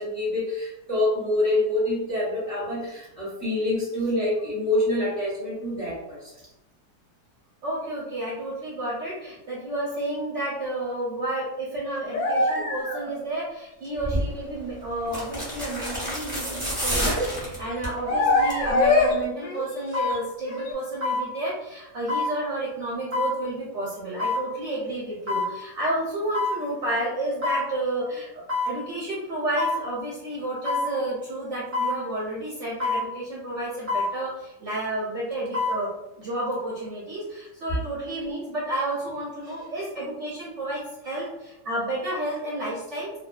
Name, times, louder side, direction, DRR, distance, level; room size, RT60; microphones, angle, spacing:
voice 1, 0.0-6.3, left 1 dB, 30° left, -9 dB, 0.8 m, -26 dB
voice 2, 7.6-43.1, right 1 dB, 60° right, -6 dB, 0.8 m, -31 dB
sound 1, 11.9-13.1 14.2-14.3 16.4-16.7 18.1-19.1 19.4-20.2 20.4-20.7, left 3 dB, 65° left, 0.8 m, -24 dB
sound 2, 14.0-14.3 15.0-18.0 18.4-18.7 19.0-19.1, equal, 10° right, 1.0 m, -29 dB
sound 3, 18.8-18.9 19.9-20.2 21.0-21.3 22.1-22.3 23.1-23.4 24.2-24.4 25.3-25.5 26.3-26.6 27.4-27.7 28.5-28.8 29.6-29.8 30.6-30.9 31.7-32.0 32.8-33.1 33.9-34.1 35.3-35.8 36.2-36.3, left 3 dB, 45° right, 0.4 m, -26 dB
2.5 x 2.3 x 2.2 m, 0.92 s
omnidirectional pair, 1.7 m